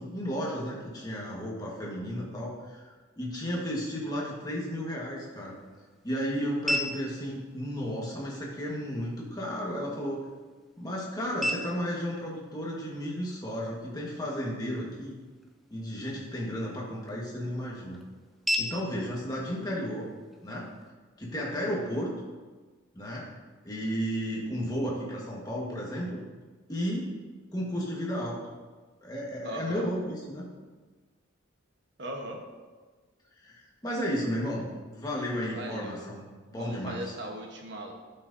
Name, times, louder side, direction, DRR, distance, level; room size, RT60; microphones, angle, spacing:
voice 1, 0.0-2.9 3.2-5.6 6.0-10.2 10.8-15.2 15.7-18.0 18.6-20.1 20.4-20.7 21.2-22.1 22.9-23.3 23.6-26.2 26.7-27.1 27.5-28.4 29.0-30.4 33.4-37.0, equal, 20° left, -4 dB, 1.4 m, -33 dB
sound 1, 4.9-20.9, equal, ahead, 0.5 m, -40 dB
voice 2, 29.4-29.8 32.0-32.4 35.4-36.0 36.5-37.9, right 1 dB, 55° right, 1 dB, 1.2 m, -39 dB
11.5 x 5.8 x 2.7 m, 1.3 s
head